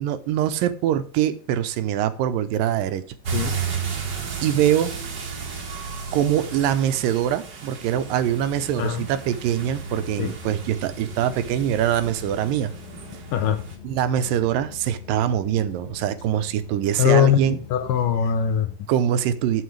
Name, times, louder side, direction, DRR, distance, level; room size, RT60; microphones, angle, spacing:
voice 1, 0.0-3.0 4.4-4.9 6.1-12.7 13.8-17.6 18.9-19.6, right 10 dB, 80° right, 12 dB, 2.3 m, -23 dB
sound 1, 3.2-13.7, right 6 dB, 45° right, 1.5 m, -34 dB
sound 2, 7.9-18.6, left 8 dB, 35° left, 2.1 m, -43 dB
voice 2, 8.8-9.1 10.2-10.3 13.3-13.6 17.0-18.7, left 9 dB, 75° left, 8 dB, 2.4 m, -21 dB
13.0 x 5.7 x 3.2 m, 0.43 s
omnidirectional pair, 4.1 m